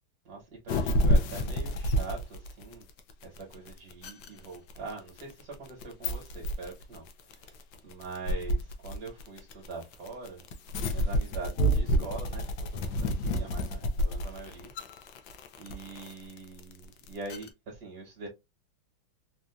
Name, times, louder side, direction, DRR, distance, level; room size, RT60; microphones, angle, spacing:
voice 1, 0.2-2.8 3.2-7.5 7.8-10.4 10.9-12.4 12.7-14.7 15.6-18.3, right 3 dB, 55° right, 1.6 m, -43 dB
sound 1, 0.7-17.5, equal, 70° left, 1.2 m, -29 dB
4.1 x 2.4 x 2.2 m
omnidirectional pair, 2.2 m